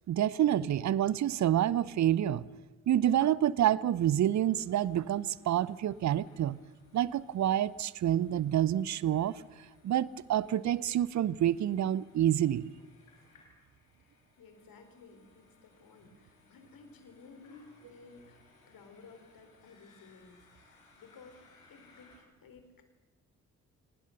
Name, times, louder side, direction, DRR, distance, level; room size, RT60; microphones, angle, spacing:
voice 1, 0.1-2.4 2.9-6.6 6.9-9.4 9.8-12.7, right 11 dB, 45° right, 21 dB, 0.8 m, -28 dB
sound 1, 4.3-22.2, left 3 dB, 85° left, 4.3 m, -65 dB
voice 2, 14.1-22.8, left 4 dB, 55° left, 7 dB, 4.5 m, -56 dB
28.5 x 19.0 x 6.9 m, 1.2 s
figure-of-eight pair, 40°, 41 cm